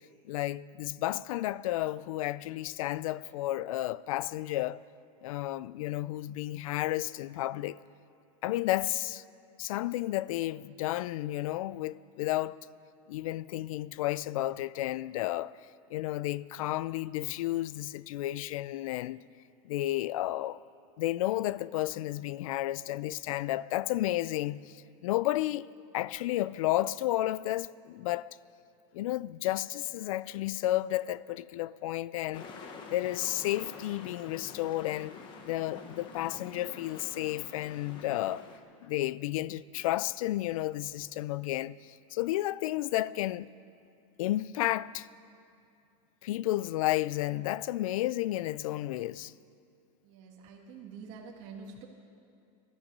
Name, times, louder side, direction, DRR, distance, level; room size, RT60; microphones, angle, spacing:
voice 1, 0.2-4.8 5.2-7.8 8.4-9.2 9.6-12.6 13.1-15.6 15.9-19.2 19.6-20.6 21.0-25.7 25.9-28.3 28.9-32.5 32.9-35.1 35.4-38.5 38.8-41.8 42.1-43.5 44.2-45.1 46.2-49.3, left 15 dB, 90° left, 0.4 m, -32 dB
sound 1, 32.3-38.6, left 5 dB, 30° left, 1.1 m, -47 dB
voice 2, 50.0-51.9, right 5 dB, 40° right, 1.7 m, -47 dB
19.0 x 12.5 x 5.4 m
supercardioid pair, 170°, 17 cm